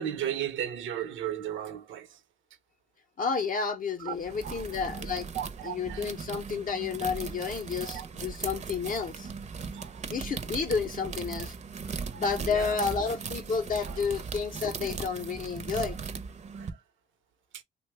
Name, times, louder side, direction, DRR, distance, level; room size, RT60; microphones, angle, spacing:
voice 1, 0.0-2.2 4.0-4.1 4.4-4.6 5.3-6.1 7.8-8.1 9.7-10.0 12.1-12.8 13.8-14.0 16.6-16.7 17.5-17.6, right 10 dB, 80° right, 0.7 m, -35 dB
voice 2, 3.2-5.3 5.6-9.3 10.1-11.5 12.1-16.0, left 5 dB, 45° left, 0.6 m, -31 dB
sound 1, 4.1-16.7, right 5 dB, 35° right, 0.5 m, -38 dB
2.8 x 2.1 x 3.2 m
cardioid pair, 90°, 20 cm